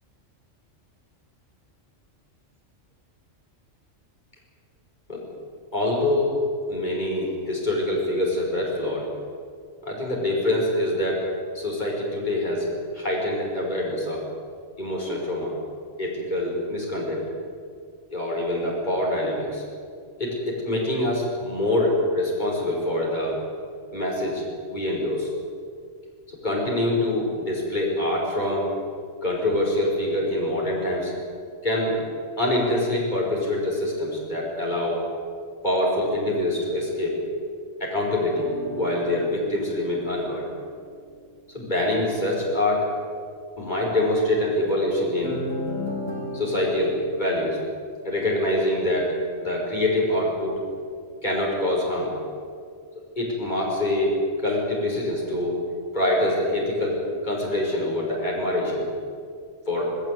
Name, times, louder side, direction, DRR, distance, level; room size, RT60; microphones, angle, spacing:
voice 1, 5.7-6.4 6.7-9.0 9.8-11.2 11.5-12.7 12.9-14.2 14.8-15.5 16.0-17.2 18.1-19.6 20.2-23.4 23.9-24.4 24.7-25.3 26.4-28.7 29.2-31.1 31.6-32.0 32.4-35.0 35.6-37.2 37.8-40.4 41.5-42.9 43.6-45.4 46.3-47.6 48.0-49.1 49.4-50.5 51.2-52.1 53.2-55.6 55.9-57.0 57.2-58.9 59.7-59.9, left 1 dB, 35° left, -3 dB, 5.9 m, -25 dB
sound 1, 38.3-40.9 45.2-47.0, equal, 50° right, 4.8 m, -34 dB
19.5 x 17.5 x 9.6 m, 2.1 s
omnidirectional pair, 1.3 m